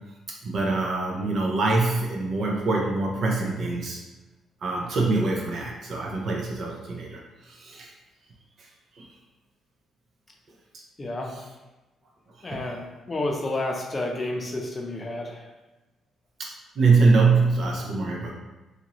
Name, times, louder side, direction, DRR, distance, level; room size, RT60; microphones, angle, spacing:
voice 1, 0.4-4.0 4.6-7.9 9.0-9.1 12.4-12.6 16.4-18.3, right 3 dB, 60° right, -2 dB, 0.5 m, -24 dB
voice 2, 11.0-11.3 12.4-15.5, left 2 dB, 30° left, 0 dB, 0.5 m, -30 dB
2.8 x 2.5 x 2.9 m, 1.1 s
cardioid pair, 90°, 0 cm